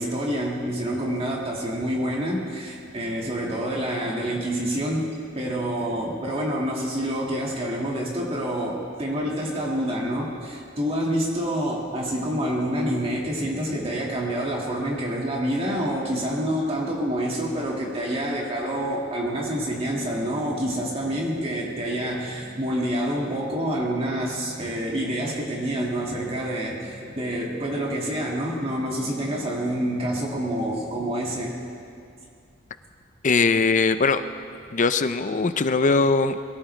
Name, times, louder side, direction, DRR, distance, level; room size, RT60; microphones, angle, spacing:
voice 1, 0.0-31.6, equal, 30° right, -3 dB, 2.0 m, -27 dB
sound 1, 19.9-31.1, equal, 70° right, 2.4 m, -45 dB
voice 2, 33.2-34.2 34.7-36.4, left 4 dB, 40° left, 11 dB, 0.6 m, -20 dB
22.0 x 16.5 x 3.3 m, 2.4 s
head